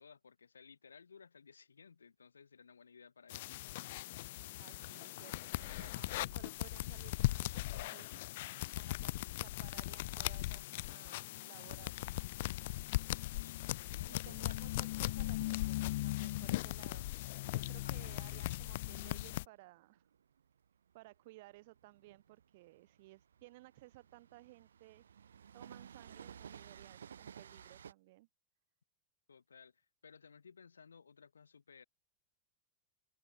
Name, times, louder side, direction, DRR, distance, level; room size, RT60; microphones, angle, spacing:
voice 1, 0.0-3.6 13.1-14.6 17.8-17.9 29.3-31.8, left 6 dB, 75° left, 5.3 m, -59 dB
sound 1, 3.3-19.4, left 18 dB, 55° left, 1.0 m, -39 dB
voice 2, 4.5-8.3 8.7-12.0 14.1-17.2 17.5-20.1 20.9-25.0 25.5-28.3, right 20 dB, 50° right, 1.8 m, -58 dB
Train, 18.8-27.9, right 8 dB, 70° right, 2.7 m, -55 dB
figure-of-eight pair, 90°, 0 cm